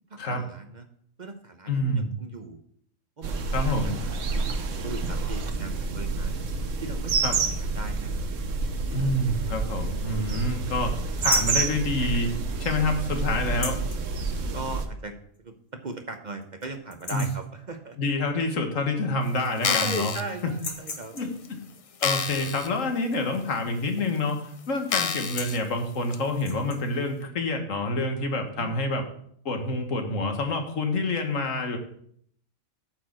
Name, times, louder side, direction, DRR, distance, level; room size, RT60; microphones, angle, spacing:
voice 1, 0.1-0.8 1.2-2.6 3.2-4.5 4.8-6.4 6.8-8.1 14.5-15.5 15.8-18.0 19.6-21.2 24.9-25.1 28.6-28.8, right 3 dB, 40° right, 6 dB, 0.8 m, -38 dB
voice 2, 1.7-2.1 3.5-3.9 7.2-7.4 8.9-10.9 11.2-12.3 12.6-13.8 17.1-17.2 18.0-20.1 21.1-21.6 22.0-29.0 29.4-31.8, left 2 dB, 80° left, 5 dB, 1.7 m, -27 dB
sound 1, 3.2-14.9, right 4 dB, 75° right, 1.3 m, -28 dB
sound 2, 11.2-11.6 13.5-14.0 15.4-15.5 15.9-16.0 16.4-16.7 16.9-17.5 18.8-18.9 19.2-19.9 20.5-21.4 23.8-24.1 24.4-24.6 25.1-25.7 26.3-26.8, left 4 dB, 40° left, 1.2 m, -36 dB
sound 3, 19.5-20.2 20.9-21.0 21.4-21.5 22.0-22.7 23.1-23.2 24.0-24.1 24.9-25.6 26.1-26.2, left 6 dB, 55° left, 0.3 m, -28 dB
8.9 x 4.7 x 7.4 m, 0.65 s
omnidirectional pair, 1.3 m